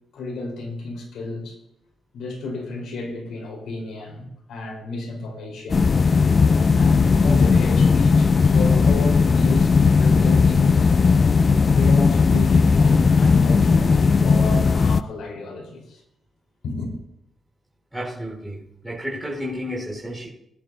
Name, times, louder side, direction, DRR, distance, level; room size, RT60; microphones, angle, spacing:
voice 1, 0.1-1.6 2.1-6.0 6.7-9.7 10.0-10.9 11.8-16.0 16.6-16.9, left 2 dB, 80° left, 4.3 m, -32 dB
sound 1, 5.7-15.0, left 4 dB, 40° left, 0.4 m, -17 dB
voice 2, 17.9-20.3, equal, 5° right, 4.7 m, -31 dB
21.5 x 11.0 x 2.8 m
cardioid pair, 100°, 0 cm